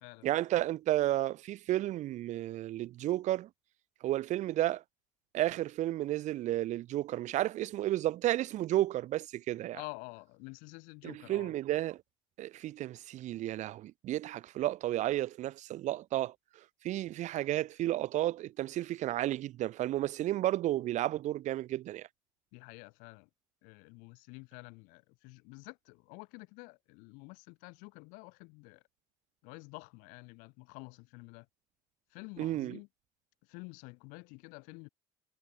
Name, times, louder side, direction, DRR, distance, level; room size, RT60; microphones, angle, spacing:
voice 1, 0.0-3.5 4.0-4.8 5.3-9.8 11.0-12.0 12.4-16.3 16.8-22.1 32.4-32.8, right 14 dB, 60° right, 3.0 m, -32 dB
voice 2, 9.7-11.5 22.5-23.3 23.6-28.8 29.4-31.5 32.1-32.9 33.5-34.9, left 29 dB, 70° left, 5.1 m, -49 dB
hypercardioid pair, 65°, 14 cm